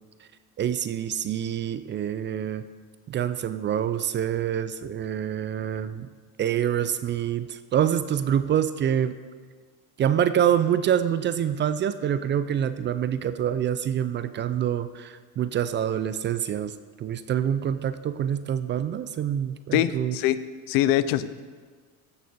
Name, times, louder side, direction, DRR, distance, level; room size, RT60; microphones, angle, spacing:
voice 1, 0.6-2.7 3.1-6.1 6.4-9.1 10.0-20.2, right 9 dB, 30° right, 13 dB, 0.4 m, -26 dB
voice 2, 19.7-21.4, left 12 dB, 65° left, 15 dB, 0.6 m, -24 dB
15.0 x 6.6 x 5.3 m, 1.5 s
cardioid pair, 125°, 38 cm